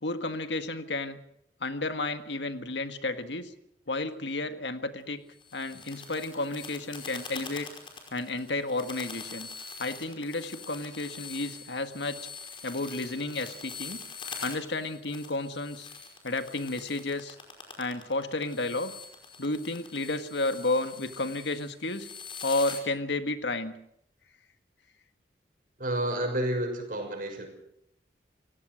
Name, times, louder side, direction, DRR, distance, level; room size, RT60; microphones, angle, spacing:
voice 1, 0.0-1.2 1.6-3.5 3.9-5.2 5.5-7.7 8.1-9.5 9.8-12.2 12.6-14.0 14.4-15.9 16.2-17.4 17.8-18.9 19.4-22.1 22.4-23.7, left 2 dB, 85° left, 8 dB, 1.8 m, -32 dB
sound 1, 5.3-22.8, left 5 dB, 30° left, 5.1 m, -44 dB
voice 2, 25.8-27.5, right 1 dB, 50° right, 4 dB, 6.4 m, -30 dB
28.5 x 17.0 x 6.4 m, 0.74 s
head